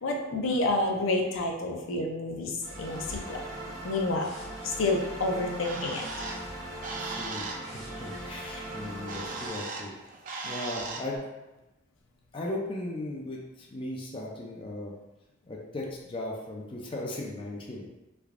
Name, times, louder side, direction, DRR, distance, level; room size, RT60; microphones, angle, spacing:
voice 1, 0.0-3.4 3.8-4.3 4.6-6.0, left 2 dB, 75° left, 0 dB, 0.5 m, -29 dB
sound 1, 2.6-9.5, right 1 dB, ahead, 0.9 m, -40 dB
Bird, 5.3-11.2, right 3 dB, 40° right, 0.4 m, -39 dB
voice 2, 7.0-9.9 10.4-11.3 12.3-14.9 15.4-17.9, left 1 dB, 25° left, -2 dB, 0.4 m, -37 dB
3.4 x 3.3 x 2.4 m, 1.0 s
head